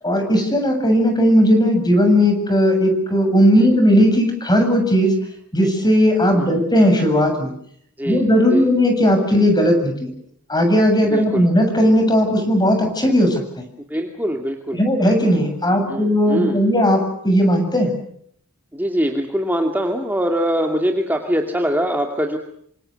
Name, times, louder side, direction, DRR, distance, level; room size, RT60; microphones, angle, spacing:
voice 1, 0.0-5.1 5.5-7.5 8.1-10.1 10.5-13.7 14.8-17.9, equal, 20° left, 6 dB, 7.6 m, -16 dB
voice 2, 6.3-6.7 8.0-8.7 11.1-11.5 13.9-14.8 15.9-16.6 18.7-22.4, equal, 10° right, 2 dB, 2.4 m, -23 dB
28.0 x 26.0 x 6.5 m, 0.68 s
head